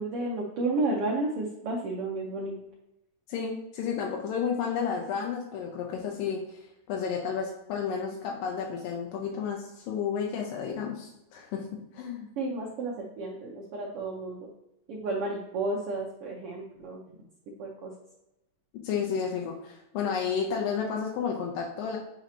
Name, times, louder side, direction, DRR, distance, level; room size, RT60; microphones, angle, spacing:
voice 1, 0.0-2.6 12.4-14.5 14.9-17.0 17.6-17.9, right 2 dB, 85° right, -2 dB, 1.2 m, -32 dB
voice 2, 3.3-6.6 6.9-11.7 11.9-12.3 18.8-22.0, left 6 dB, 90° left, 0 dB, 2.4 m, -31 dB
8.7 x 4.0 x 2.9 m, 0.91 s
omnidirectional pair, 3.8 m